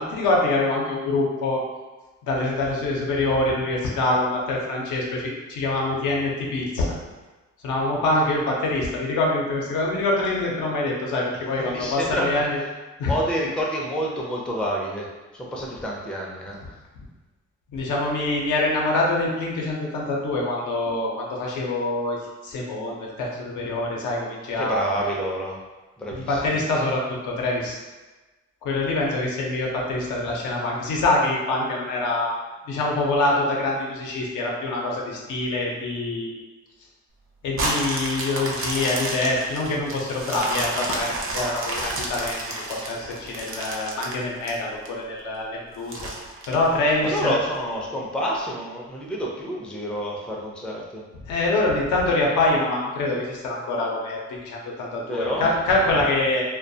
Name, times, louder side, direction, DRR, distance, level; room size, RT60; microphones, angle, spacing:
voice 1, 0.0-1.6 2.3-6.9 7.6-12.6 13.0-13.1 17.7-24.8 26.1-27.8 28.6-32.4 32.7-36.3 37.4-46.1 46.5-47.4 51.3-56.4, left 2 dB, 80° left, -2 dB, 0.6 m, -25 dB
voice 2, 11.6-12.5 13.1-16.6 24.6-25.6 26.0-26.6 47.0-51.0 55.1-56.1, equal, 5° left, -3 dB, 0.4 m, -29 dB
sound 1, 37.5-44.9 45.3-45.4 45.9-47.2 47.7-47.8, right 2 dB, 45° right, 0.5 m, -30 dB
2.2 x 2.1 x 2.6 m, 1.2 s
cardioid pair, 90°, 30 cm